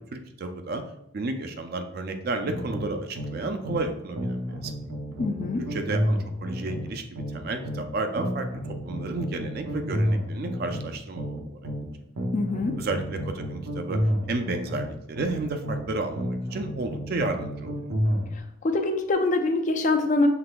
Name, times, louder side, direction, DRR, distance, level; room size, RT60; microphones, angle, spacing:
voice 1, 0.1-0.8 1.1-4.4 4.6-4.7 5.7-8.5 8.8-11.6 12.8-14.0 14.3-17.8, right 2 dB, 45° right, 7 dB, 0.4 m, -32 dB
sound 1, 2.4-3.9 4.2-7.9 8.2-11.9 12.2-15.9 16.2-18.3, equal, 90° right, 0.8 m, -30 dB
voice 2, 5.2-5.6 12.3-12.7 18.6-20.3, left 2 dB, 35° left, 6 dB, 0.3 m, -24 dB
5.9 x 3.3 x 2.2 m, 0.78 s
head